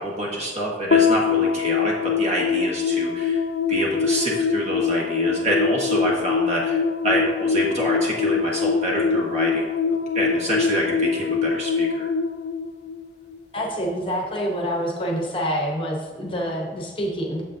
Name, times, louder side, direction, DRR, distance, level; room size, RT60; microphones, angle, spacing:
voice 1, 0.0-3.4 3.7-6.8 7.0-9.7 10.1-12.1, right 1 dB, 35° right, -3 dB, 1.4 m, -26 dB
sound 1, 0.9-13.4, left 5 dB, 65° left, 0.4 m, -23 dB
voice 2, 13.5-17.4, equal, 30° left, 0 dB, 0.8 m, -27 dB
8.5 x 7.0 x 2.6 m, 1.4 s
head